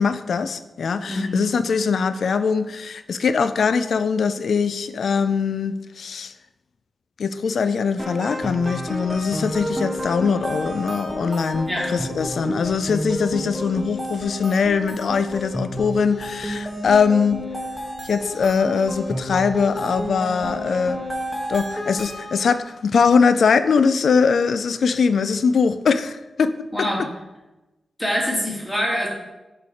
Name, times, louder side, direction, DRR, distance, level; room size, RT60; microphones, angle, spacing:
voice 1, 0.0-6.3 7.2-17.4 18.0-21.0 21.5-26.9, left 5 dB, 75° left, 0.3 m, -21 dB
voice 2, 1.1-1.4 11.7-11.9 26.7-27.0 28.0-29.1, equal, 10° left, 2.1 m, -24 dB
sound 1, 8.0-22.7, equal, 5° right, 1.2 m, -31 dB
6.2 x 3.3 x 5.6 m
cardioid pair, 60°, 0 cm